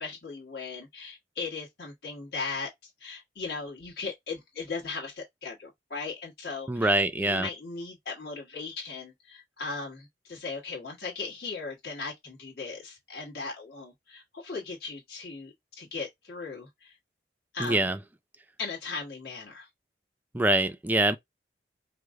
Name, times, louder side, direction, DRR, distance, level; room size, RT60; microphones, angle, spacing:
voice 1, 0.0-2.7 3.0-16.9 17.5-17.9 18.6-19.7, left 4 dB, 60° left, 1.4 m, -38 dB
voice 2, 6.7-7.5 17.6-18.0 20.3-21.2, right 2 dB, 10° right, 0.3 m, -24 dB
5.0 x 2.0 x 3.6 m
head